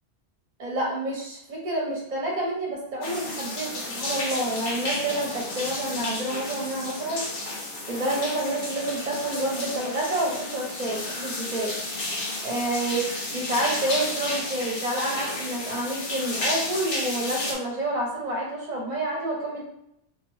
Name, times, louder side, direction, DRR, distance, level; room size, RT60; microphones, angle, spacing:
voice 1, 0.6-7.3 7.9-11.8 12.4-13.0 13.3-19.6, right 1 dB, 40° right, -2 dB, 0.8 m, -28 dB
sound 1, 3.0-17.5, left 2 dB, 85° left, 1.0 m, -32 dB
2.5 x 2.2 x 3.1 m, 0.79 s
omnidirectional pair, 1.2 m